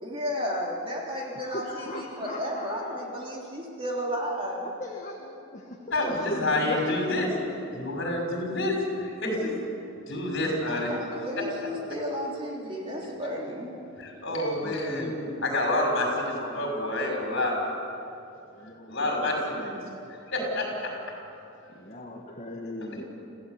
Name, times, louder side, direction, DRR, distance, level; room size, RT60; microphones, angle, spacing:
voice 1, 0.0-4.7 10.7-13.7, equal, 25° right, -2 dB, 3.3 m, -33 dB
voice 2, 1.4-3.0 4.6-7.1 14.6-15.4 18.6-19.3 19.6-20.0 21.7-23.0, left 2 dB, 35° left, 0 dB, 1.8 m, -38 dB
voice 3, 5.9-7.3 7.7-9.5 10.1-10.9 14.0-15.1 15.4-17.5 18.9-19.7 20.1-20.9 22.9-23.0, left 1 dB, 55° left, 0 dB, 6.0 m, -28 dB
27.0 x 16.0 x 8.3 m, 2.7 s
head